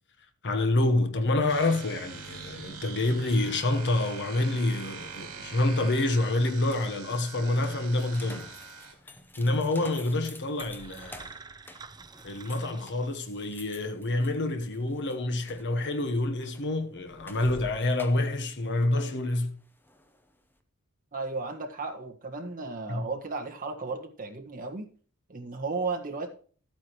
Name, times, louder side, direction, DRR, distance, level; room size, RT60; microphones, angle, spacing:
voice 1, 0.4-8.5 9.3-11.3 12.2-19.6 22.9-23.1, left 2 dB, 55° left, 1.1 m, -27 dB
sound 1, 1.3-20.5, left 1 dB, 10° left, 0.9 m, -51 dB
sound 2, 1.5-8.9, right 5 dB, 80° right, 2.7 m, -43 dB
sound 3, 10.6-13.6, right 4 dB, 20° right, 0.5 m, -48 dB
voice 2, 21.1-24.9 25.3-26.3, right 3 dB, 40° right, 1.6 m, -34 dB
13.0 x 8.9 x 3.1 m
head